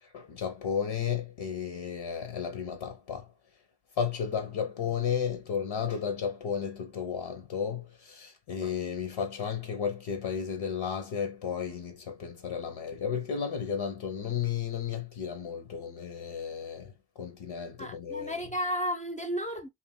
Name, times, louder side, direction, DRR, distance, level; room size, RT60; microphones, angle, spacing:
voice 1, 0.0-3.3 4.0-18.4, left 7 dB, 80° left, 0.8 m, -33 dB
voice 2, 17.8-19.7, equal, 15° left, 0.5 m, -33 dB
2.9 x 2.5 x 3.5 m
cardioid pair, 40°, 46 cm